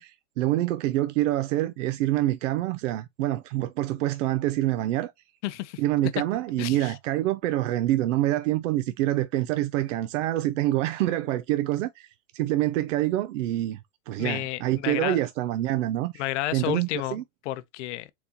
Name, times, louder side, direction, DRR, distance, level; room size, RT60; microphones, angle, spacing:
voice 1, 0.0-5.1 5.8-13.8 14.1-16.2 16.5-17.2, right 15 dB, 65° right, 0.6 m, -26 dB
voice 2, 5.4-5.8 6.6-7.0 14.2-15.2 16.1-18.1, left 15 dB, 60° left, 0.7 m, -31 dB
4.2 x 4.1 x 2.8 m
supercardioid pair, 145°, 40 cm